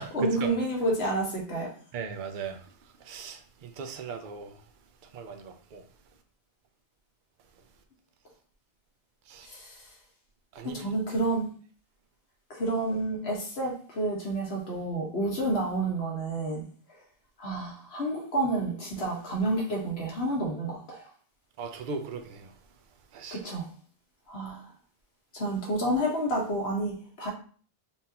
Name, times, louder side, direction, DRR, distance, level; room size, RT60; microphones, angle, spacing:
voice 1, 0.1-1.7 9.4-9.8 10.6-11.5 12.5-16.6 17.4-21.0 23.3-23.7 24.3-24.6 25.3-27.3, right 1 dB, 80° left, 1.5 m, -29 dB
voice 2, 1.9-2.6 3.1-4.6 5.1-5.8 9.3-9.5 10.6-10.8 21.6-22.5 23.1-23.4, right 5 dB, 55° right, 0.7 m, -38 dB
5.4 x 2.7 x 2.8 m
omnidirectional pair, 1.1 m